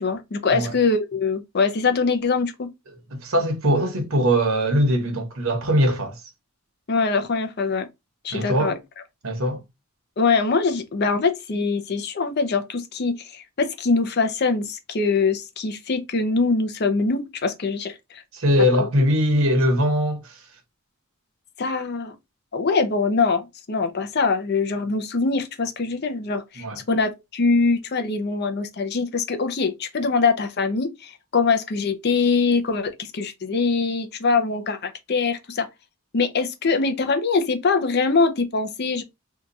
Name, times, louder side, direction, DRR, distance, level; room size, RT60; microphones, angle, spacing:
voice 1, 0.0-2.7 6.9-7.9 8.2-8.7 10.2-18.2 21.6-22.1 22.5-35.7 36.1-39.0, left 4 dB, 50° left, 0.5 m, -23 dB
voice 2, 3.1-6.2 8.3-8.7 9.2-9.6 18.3-20.4 26.6-26.8, equal, 70° right, 1.0 m, -21 dB
2.8 x 2.3 x 3.8 m
head